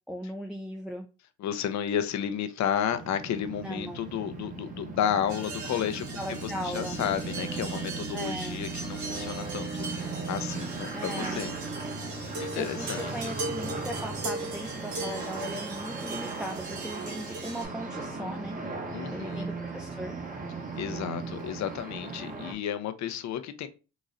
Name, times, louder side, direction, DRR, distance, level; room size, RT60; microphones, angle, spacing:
voice 1, 0.1-1.1 3.5-4.0 6.2-7.0 8.1-8.6 10.9-11.4 12.5-18.6 19.1-20.1, equal, 5° right, 0.4 m, -38 dB
voice 2, 1.4-11.5 12.3-13.3 18.9-19.5 20.8-23.7, left 9 dB, 65° left, 0.6 m, -32 dB
sound 1, 2.9-22.5, right 3 dB, 25° right, 0.9 m, -37 dB
sound 2, 5.3-17.6, right 3 dB, 75° right, 1.3 m, -39 dB
3.9 x 3.0 x 2.5 m
cardioid pair, 90°, 30 cm